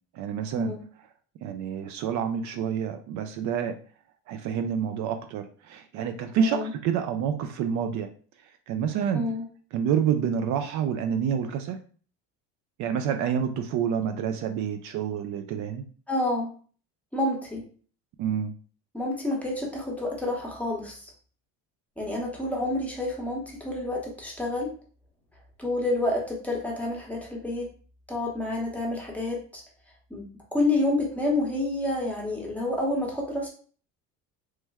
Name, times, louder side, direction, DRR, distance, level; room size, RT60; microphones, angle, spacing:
voice 1, 0.1-0.7 1.4-3.7 4.3-8.1 8.7-9.3 9.7-11.8 12.8-15.8 18.2-18.5, right 8 dB, 60° right, 7 dB, 0.4 m, -28 dB
voice 2, 6.4-6.7 9.1-9.4 16.1-16.5 17.1-17.6 18.9-21.1 22.0-24.7 25.6-27.7 28.1-29.6 30.1-30.2 30.5-33.5, left 2 dB, 5° left, -2 dB, 0.8 m, -28 dB
3.1 x 2.1 x 3.4 m, 0.41 s
cardioid pair, 135°, 33 cm